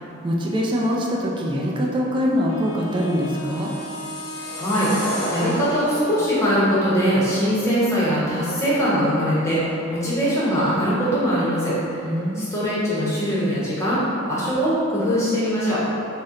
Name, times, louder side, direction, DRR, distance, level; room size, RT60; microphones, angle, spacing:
voice 1, 0.2-3.7 12.0-12.5, equal, 25° right, -3 dB, 0.4 m, -23 dB
Wind instrument woodwind instrument, 2.5-6.6, left 1 dB, 90° left, 0.4 m, -36 dB
sound 1, 3.1-6.3, equal, 50° left, 0.7 m, -31 dB
voice 2, 4.6-11.7 12.3-14.0 14.3-15.8, equal, 15° left, -9 dB, 0.9 m, -21 dB
4.1 x 2.1 x 3.7 m, 2.8 s
head